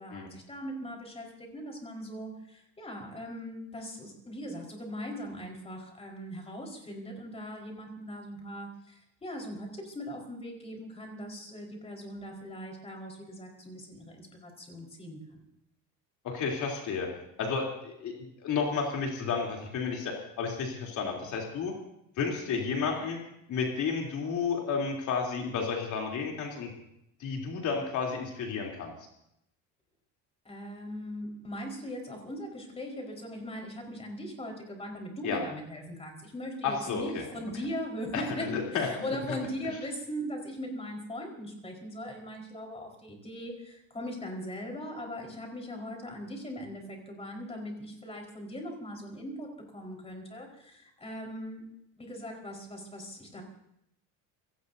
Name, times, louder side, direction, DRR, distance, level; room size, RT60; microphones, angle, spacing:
voice 1, 0.0-15.4 30.4-51.6 52.0-53.4, equal, 15° left, 1 dB, 4.6 m, -40 dB
voice 2, 16.2-17.1 17.4-21.7 22.2-23.2 23.5-26.7 27.2-28.9 35.2-35.4 36.6-37.2 38.1-38.9, left 5 dB, 50° left, -1 dB, 3.4 m, -32 dB
28.5 x 17.5 x 2.7 m, 0.78 s
cardioid pair, 145°, 36 cm